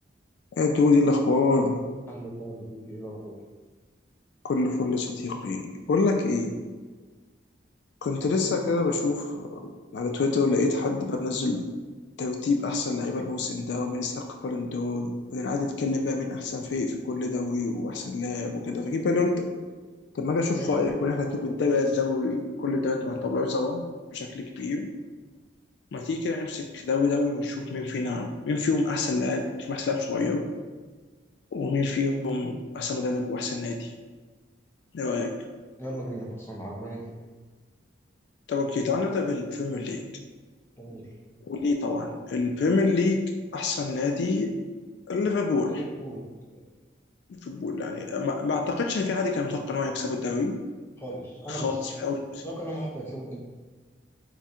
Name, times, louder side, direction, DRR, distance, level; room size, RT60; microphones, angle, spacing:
voice 1, 0.5-1.8 4.4-6.5 8.0-11.7 12.2-19.5 20.1-23.8 24.1-24.9 25.9-30.5 31.5-33.9 34.9-35.4 38.5-40.0 41.4-43.3 43.5-44.6 45.1-45.8 47.3-50.6 51.5-52.4, left 3 dB, 65° left, 4 dB, 0.3 m, -27 dB
voice 2, 2.1-3.4 20.6-20.7 35.8-37.0 40.8-41.1 45.7-46.3 46.5-46.6 51.0-51.8 52.4-53.3, right 1 dB, 15° left, -3 dB, 0.6 m, -37 dB
3.6 x 2.3 x 4.2 m, 1.4 s
head